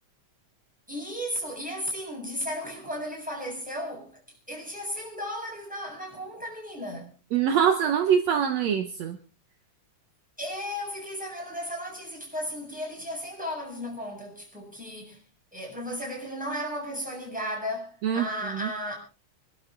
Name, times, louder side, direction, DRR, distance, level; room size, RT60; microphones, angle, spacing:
voice 1, 0.9-4.1 4.5-7.1 10.4-15.2 15.5-19.0, equal, ahead, 7.7 m, -35 dB
voice 2, 7.3-9.2 18.0-18.3 18.5-18.7, right 8 dB, 70° right, 2.2 m, -24 dB
26.5 x 12.0 x 3.8 m
omnidirectional pair, 3.3 m